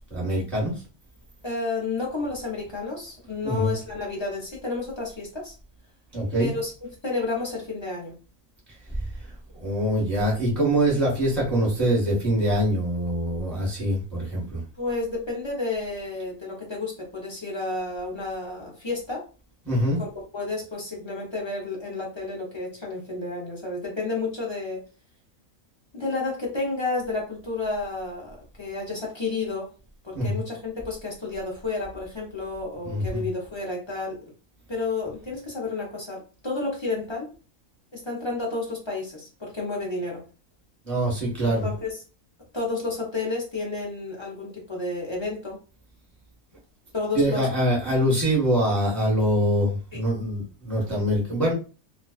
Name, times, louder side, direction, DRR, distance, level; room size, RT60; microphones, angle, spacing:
voice 1, 0.1-0.7 3.4-3.7 6.1-6.5 9.5-14.6 19.7-20.0 30.1-30.4 32.8-33.2 40.8-41.6 47.1-51.5, right 1 dB, ahead, -5 dB, 0.9 m, -24 dB
voice 2, 1.4-5.6 6.4-6.7 7.0-8.1 14.8-19.2 20.0-20.1 20.3-24.8 25.9-29.7 30.0-34.2 34.7-37.3 37.9-40.2 41.6-42.0 42.5-45.6 46.9-47.5 49.9-50.0, left 3 dB, 30° left, -3 dB, 0.5 m, -31 dB
2.4 x 2.3 x 2.3 m, 0.34 s
omnidirectional pair, 1.5 m